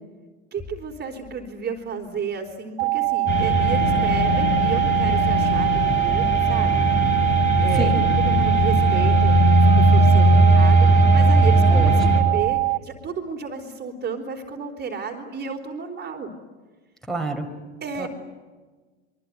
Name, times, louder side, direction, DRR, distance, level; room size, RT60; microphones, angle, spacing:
voice 1, 0.5-6.9 7.2-7.3 7.6-7.9 8.2-16.3 17.8-18.1, right 5 dB, 25° right, 5 dB, 4.0 m, -32 dB
sound 1, 2.8-12.8, right 27 dB, 60° right, 0.8 m, -23 dB
sound 2, 3.3-12.2, equal, 30° left, 7.8 m, -18 dB
voice 2, 11.7-12.2 17.1-17.5 18.0-18.1, right 1 dB, ahead, 6 dB, 4.2 m, -28 dB
26.0 x 24.0 x 9.4 m, 1.3 s
supercardioid pair, 120°, 38 cm